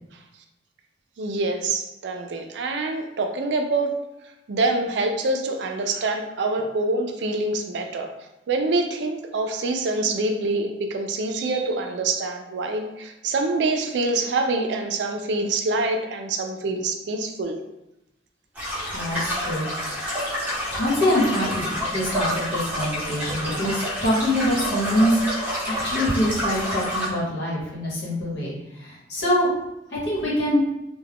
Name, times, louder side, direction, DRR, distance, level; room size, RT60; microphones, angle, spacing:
voice 1, 1.2-3.9 4.5-8.1 8.5-17.6, right 2 dB, 75° right, 4 dB, 0.4 m, -25 dB
sound 1, 18.6-27.1, equal, 10° right, 0.8 m, -28 dB
voice 2, 18.9-19.7 19.9-20.2 20.7-29.5 30.0-30.6, equal, 65° left, -6 dB, 1.1 m, -24 dB
2.3 x 2.2 x 3.4 m, 0.92 s
head